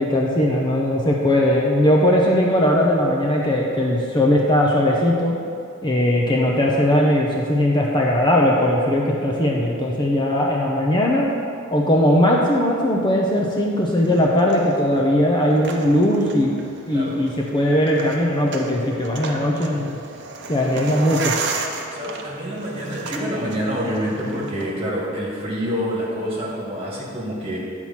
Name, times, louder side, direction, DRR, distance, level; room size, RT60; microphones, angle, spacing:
voice 1, 0.0-5.4 5.8-11.3 11.7-16.5 16.9-20.0 20.5-21.3, left 1 dB, 25° left, -2 dB, 0.7 m, -19 dB
sound 1, 13.8-24.7, right 4 dB, 60° right, 0.7 m, -34 dB
voice 2, 16.9-17.2 21.9-27.6, equal, 30° right, -5 dB, 2.1 m, -27 dB
10.0 x 4.5 x 5.7 m, 2.4 s
head